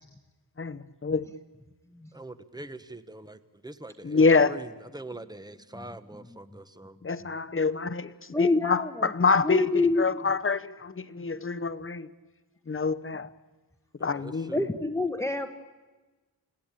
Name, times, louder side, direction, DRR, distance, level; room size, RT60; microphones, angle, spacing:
voice 1, 0.6-1.2 4.0-4.6 7.0-12.1 12.7-13.3 14.0-14.5, left 4 dB, 30° left, 1.0 m, -26 dB
voice 2, 2.1-7.0 14.0-14.7, right 2 dB, 10° right, 1.1 m, -43 dB
voice 3, 8.3-9.1 9.4-10.2 14.5-15.5, left 3 dB, 5° left, 1.1 m, -27 dB
29.5 x 17.5 x 9.0 m
wide cardioid pair, 125°, 40 cm